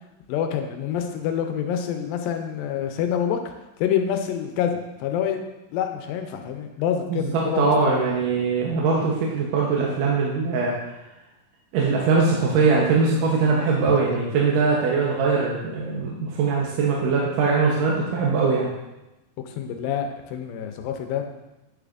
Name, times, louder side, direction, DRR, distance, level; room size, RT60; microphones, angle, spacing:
voice 1, 0.3-3.4 3.8-5.4 5.7-8.0 13.9-14.1 19.5-21.3, left 8 dB, 90° left, 5 dB, 2.4 m, -27 dB
voice 2, 7.1-10.9 11.7-18.7, right 4 dB, 75° right, -3 dB, 2.4 m, -21 dB
9.5 x 6.7 x 2.5 m, 0.97 s
omnidirectional pair, 4.1 m